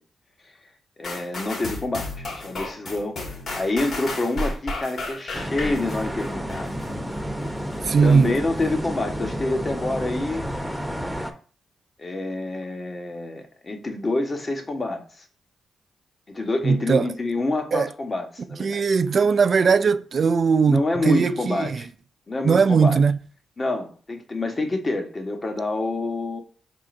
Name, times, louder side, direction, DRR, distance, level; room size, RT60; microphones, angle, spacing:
sound 1, 1.0-6.9 7.4-7.5, left 2 dB, 60° left, 1.9 m, -33 dB
voice 1, 1.0-7.0 8.0-10.4 12.0-15.2 16.3-18.8 20.7-21.9 22.3-23.0 23.6-26.4, left 2 dB, 40° left, 1.1 m, -27 dB
sound 2, 5.3-11.3, equal, 5° right, 0.9 m, -31 dB
voice 2, 7.9-8.3 16.6-17.0 17.7-17.9 18.6-20.8 21.1-21.7 22.4-23.2, right 5 dB, 60° right, 0.4 m, -19 dB
5.6 x 3.7 x 2.6 m
supercardioid pair, 50°, 0 cm